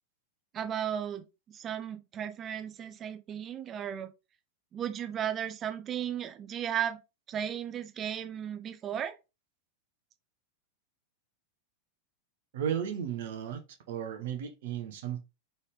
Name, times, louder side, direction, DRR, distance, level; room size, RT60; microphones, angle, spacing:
voice 1, 0.5-4.1 4.7-7.0 7.3-9.2, right 9 dB, 25° right, 0.7 m, -35 dB
voice 2, 12.5-13.6 13.9-15.2, right 9 dB, 55° right, 0.8 m, -34 dB
4.0 x 3.2 x 3.5 m
figure-of-eight pair, 90°, 0 cm